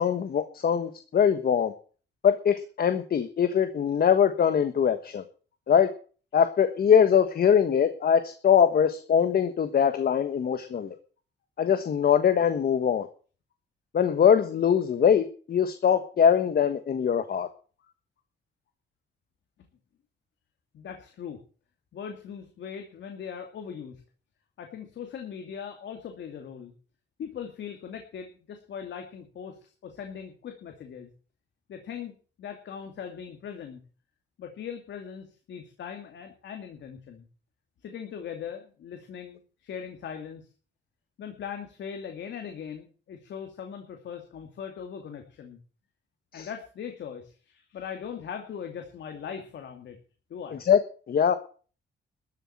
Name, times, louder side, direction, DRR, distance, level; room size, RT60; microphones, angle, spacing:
voice 1, 0.0-1.7 2.2-5.2 5.7-5.9 6.3-10.9 11.6-13.1 13.9-17.5 46.3-46.5 50.7-50.8 51.1-51.4, left 8 dB, 55° left, 9 dB, 1.4 m, -22 dB
voice 2, 20.7-21.4 21.9-24.0 24.6-26.7 27.2-31.1 31.7-33.8 34.4-37.3 37.8-40.5 41.2-45.6 46.3-50.0 50.3-50.6, left 7 dB, 75° left, 4 dB, 2.5 m, -40 dB
13.5 x 7.5 x 8.6 m, 0.39 s
cardioid pair, 115°, 19 cm